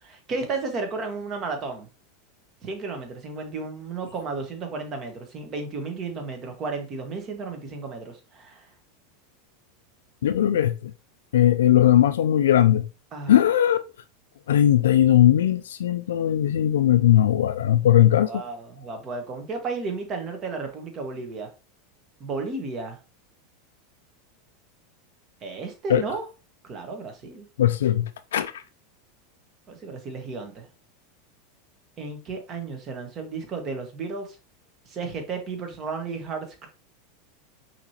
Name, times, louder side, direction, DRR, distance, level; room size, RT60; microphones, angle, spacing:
voice 1, 0.0-1.9 2.6-8.7 13.1-13.4 18.3-21.5 22.2-23.0 25.4-26.2 26.6-27.5 29.7-30.7 32.0-34.4 34.9-36.7, right 4 dB, 40° right, 1.3 m, -33 dB
voice 2, 10.2-10.9 11.3-12.9 13.3-13.8 14.5-18.3 25.9-26.0 27.6-28.6, left 11 dB, 75° left, 0.3 m, -19 dB
5.8 x 3.0 x 2.8 m
hypercardioid pair, 90°, 0 cm